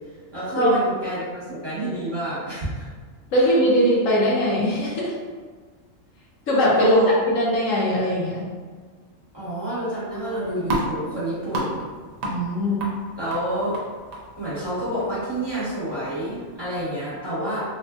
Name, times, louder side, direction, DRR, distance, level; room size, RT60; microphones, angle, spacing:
voice 1, 0.3-2.9 3.4-3.5 6.8-7.1 9.3-11.9 13.2-13.7 14.4-17.6, right 1 dB, 20° right, -12 dB, 1.2 m, -28 dB
voice 2, 3.3-5.1 6.5-8.4 12.2-12.9, equal, 90° left, -4 dB, 1.2 m, -20 dB
sound 1, 10.1-16.8, right 1 dB, 55° right, 0.4 m, -34 dB
3.2 x 2.6 x 2.2 m, 1.5 s
omnidirectional pair, 1.3 m